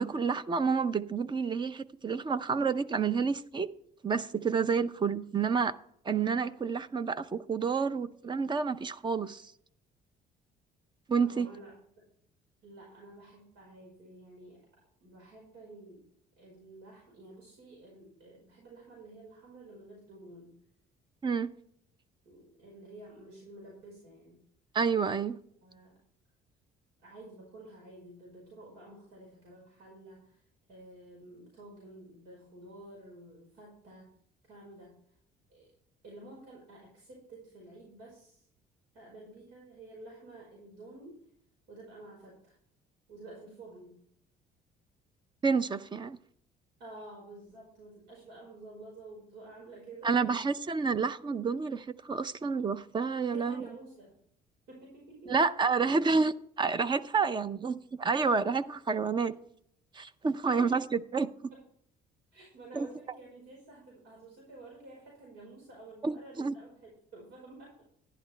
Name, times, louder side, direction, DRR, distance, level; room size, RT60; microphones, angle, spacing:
voice 1, 0.0-3.7 4.0-5.7 6.0-9.5 11.1-11.5 21.2-21.5 24.7-25.4 45.4-46.2 50.0-53.7 55.3-59.4 59.9-61.5 62.7-62.9 66.0-66.5, right 5 dB, 25° right, 0.6 m, -29 dB
voice 2, 11.2-11.8 12.6-14.7 15.0-16.1 16.4-20.5 22.2-24.4 25.6-26.0 27.0-30.4 30.7-34.1 34.4-35.0 35.5-35.7 36.0-38.5 38.9-41.2 41.7-42.6 43.1-44.0 46.8-50.4 53.2-54.1 54.7-55.3 60.5-60.7 61.5-61.6 62.3-67.8, right 2 dB, 90° right, 5.0 m, -51 dB
11.0 x 11.0 x 3.3 m
cardioid pair, 110°, 17 cm